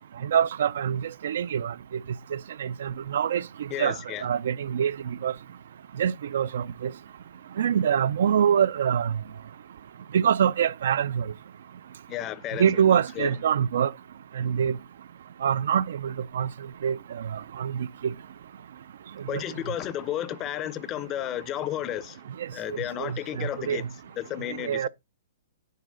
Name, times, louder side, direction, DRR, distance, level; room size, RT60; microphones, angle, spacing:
voice 1, 0.2-1.7 2.3-3.4 3.8-5.3 6.0-6.9 7.6-9.1 10.1-11.3 12.6-13.9 14.4-14.8 15.4-16.5 16.8-18.1 19.3-19.4 22.4-22.5 23.0-23.9 24.6-24.9, right 8 dB, 70° right, 0.4 m, -25 dB
voice 2, 3.7-4.3 12.1-12.8 13.2-13.3 19.3-22.2 22.5-23.8 24.2-24.9, left 12 dB, 25° left, 0.5 m, -32 dB
9.3 x 4.6 x 3.8 m
hypercardioid pair, 155°, 0 cm